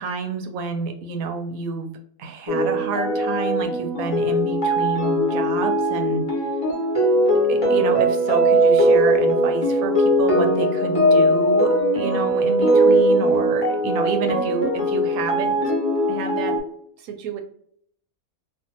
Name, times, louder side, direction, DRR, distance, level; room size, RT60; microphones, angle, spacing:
voice 1, 0.0-1.9 2.2-6.3 7.3-15.5 16.1-16.6 17.0-17.4, right 5 dB, 80° right, 6 dB, 1.0 m, -28 dB
sound 1, 2.5-16.6, right 1 dB, 30° left, 0.8 m, -20 dB
2.6 x 2.3 x 2.7 m, 0.67 s
omnidirectional pair, 1.5 m